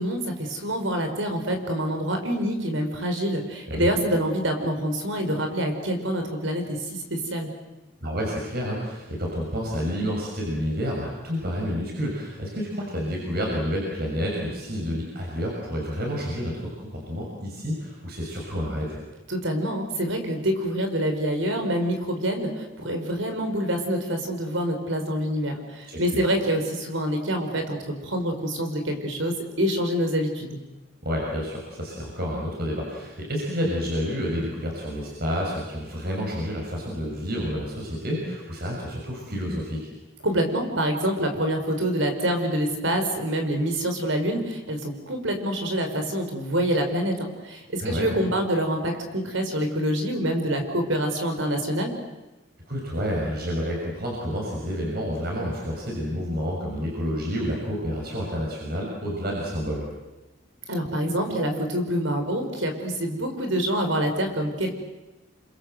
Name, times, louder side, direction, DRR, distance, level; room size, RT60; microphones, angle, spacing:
voice 1, 0.0-7.5 19.3-30.6 40.2-51.9 60.7-64.7, equal, 70° right, 5 dB, 5.2 m, -26 dB
voice 2, 8.0-19.0 25.9-26.3 31.0-39.8 47.8-48.1 52.7-59.9, equal, 50° right, -2 dB, 6.4 m, -29 dB
29.5 x 25.5 x 7.9 m, 1.1 s
head